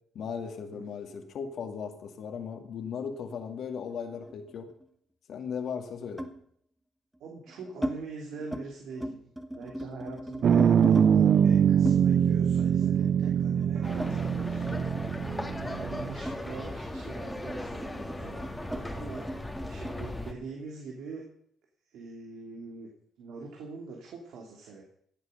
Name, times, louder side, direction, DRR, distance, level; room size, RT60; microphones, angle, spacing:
voice 1, 0.1-4.7 5.3-6.3, left 6 dB, 70° left, 5 dB, 2.2 m, -37 dB
sound 1, 3.3-4.9 6.2-6.4 7.2-8.0 8.3-8.7 8.9-11.1 11.8-14.7 15.0-20.0, equal, 5° right, 1.5 m, -38 dB
voice 2, 7.2-9.2 9.5-14.7 15.7-21.2 21.9-22.9 23.2-24.8, right 4 dB, 80° right, 0 dB, 2.9 m, -43 dB
sound 2, 10.4-16.2, right 8 dB, 60° right, 0.4 m, -23 dB
sound 3, 13.8-20.3, left 1 dB, 10° left, 1.9 m, -37 dB
16.0 x 8.2 x 6.6 m, 0.65 s
cardioid pair, 90°, 0 cm